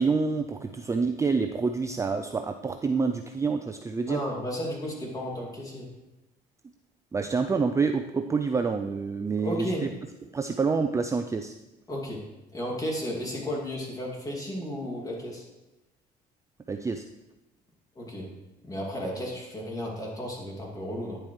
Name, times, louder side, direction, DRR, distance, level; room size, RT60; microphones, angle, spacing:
voice 1, 0.0-4.2 7.1-9.9 10.3-11.5 16.7-17.0, right 4 dB, 15° right, 6 dB, 0.4 m, -27 dB
voice 2, 4.1-5.9 9.4-9.8 11.9-12.2 12.5-15.4 18.0-18.3 18.6-21.2, equal, 20° left, -2 dB, 2.3 m, -33 dB
10.0 x 7.4 x 3.2 m, 0.99 s
cardioid pair, 110°, 17 cm